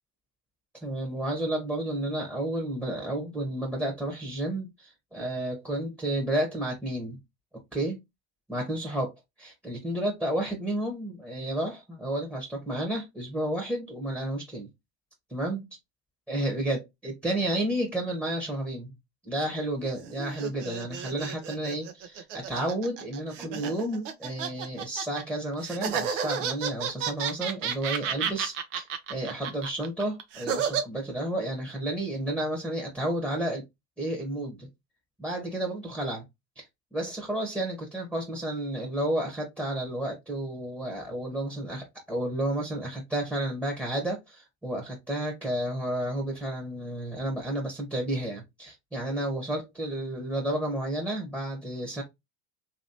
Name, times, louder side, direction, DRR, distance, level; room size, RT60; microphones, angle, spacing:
voice 1, 0.8-7.2 7.7-8.0 8.5-9.1 9.4-14.7 15.3-15.6 16.3-18.9 19.2-33.6 34.0-34.7 35.2-36.2 36.6-36.7 36.9-52.0, right 1 dB, 5° right, 1.0 m, -31 dB
sound 1, 19.8-25.2 25.6-30.8, right 7 dB, 70° right, 0.8 m, -32 dB
2.9 x 2.9 x 2.7 m
hypercardioid pair, 90°, 38 cm